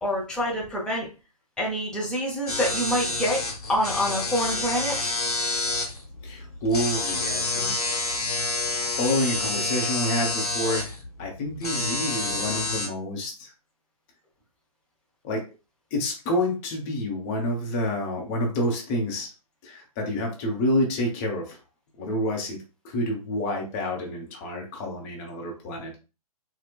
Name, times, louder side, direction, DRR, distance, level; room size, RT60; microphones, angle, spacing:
voice 1, 0.0-1.1 1.6-5.1, equal, 5° left, -3 dB, 0.5 m, -27 dB
sound 1, 2.5-12.9, left 2 dB, 75° left, 1.0 m, -29 dB
voice 2, 6.2-8.0 8.9-13.5 15.2-15.4 15.9-19.3 19.6-21.6 22.0-25.9, left 1 dB, 20° left, 1 dB, 0.8 m, -28 dB
4.2 x 2.1 x 2.3 m, 0.31 s
figure-of-eight pair, 130°, 20 cm